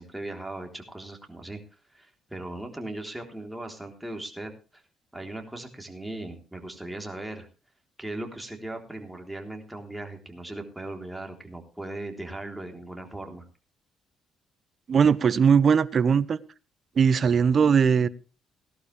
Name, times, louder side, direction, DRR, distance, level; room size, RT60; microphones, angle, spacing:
voice 1, 0.0-1.6 1.9-4.8 5.1-7.5 8.0-13.5, right 2 dB, 5° right, 3 dB, 3.6 m, -38 dB
voice 2, 14.9-16.4 17.0-18.1, right 6 dB, 50° right, 17 dB, 0.8 m, -20 dB
18.0 x 12.0 x 3.4 m, 0.33 s
cardioid pair, 90°, 0 cm